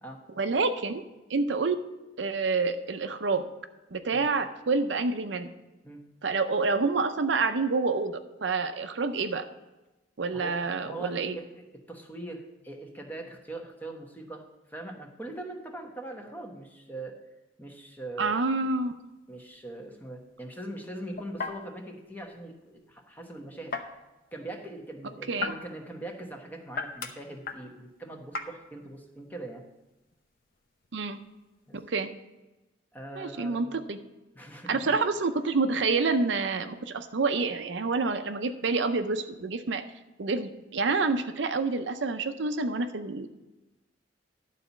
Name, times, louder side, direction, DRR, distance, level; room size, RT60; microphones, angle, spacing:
voice 1, 0.4-1.0 1.3-1.8 2.2-3.5 3.9-5.5 6.2-9.4 10.2-11.4 18.2-18.9 25.3-25.6 30.9-31.2 31.9-32.1 33.2-34.0 34.7-39.8 40.2-43.3, right 4 dB, 70° right, 8 dB, 0.6 m, -28 dB
voice 2, 10.8-17.1 17.6-18.4 19.3-24.0 24.3-29.6 31.7-31.8 32.9-33.6 34.3-34.9, right 1 dB, 10° left, 2 dB, 1.1 m, -41 dB
sound 1, 18.8-31.8, left 4 dB, 50° left, 0.8 m, -42 dB
11.5 x 4.1 x 7.0 m, 1.0 s
head